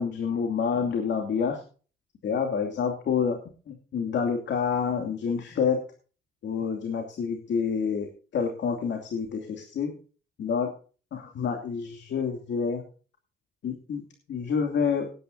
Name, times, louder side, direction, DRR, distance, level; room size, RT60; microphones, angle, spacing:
voice 1, 0.0-1.6 2.2-3.4 3.7-5.8 6.4-9.9 10.4-10.7 11.1-12.8 13.6-14.0 14.3-15.1, left 6 dB, 65° left, 3 dB, 2.6 m, -28 dB
19.0 x 10.0 x 2.7 m, 0.38 s
cardioid pair, 90°, 20 cm